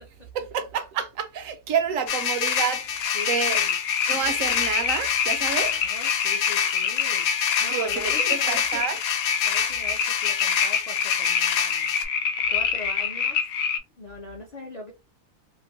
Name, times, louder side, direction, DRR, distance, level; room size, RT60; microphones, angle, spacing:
voice 1, 0.3-3.0 3.3-3.6 4.1-5.7 7.7-9.0, right 7 dB, 75° right, 1.0 m, -28 dB
sound 1, 2.1-12.0, left 8 dB, 90° left, 1.1 m, -27 dB
sound 2, 3.0-13.8, left 7 dB, 70° left, 0.8 m, -27 dB
voice 2, 3.1-3.8 5.5-8.9 9.4-11.9 12.5-13.4 14.0-14.9, left 2 dB, 50° left, 0.5 m, -40 dB
2.9 x 2.5 x 2.9 m
omnidirectional pair, 1.4 m